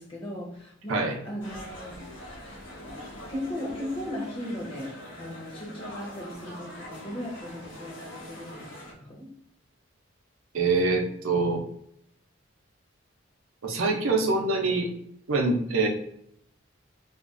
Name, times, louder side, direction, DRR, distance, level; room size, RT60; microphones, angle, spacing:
voice 1, 0.0-2.1 2.8-3.0 3.3-9.3, left 1 dB, 25° left, -2 dB, 0.6 m, -37 dB
sound 1, 1.4-8.9, equal, 65° left, 0.7 m, -43 dB
voice 2, 10.5-11.6 13.6-14.9 15.3-15.9, right 3 dB, 85° right, 2 dB, 0.5 m, -24 dB
2.4 x 2.2 x 2.4 m, 0.69 s
head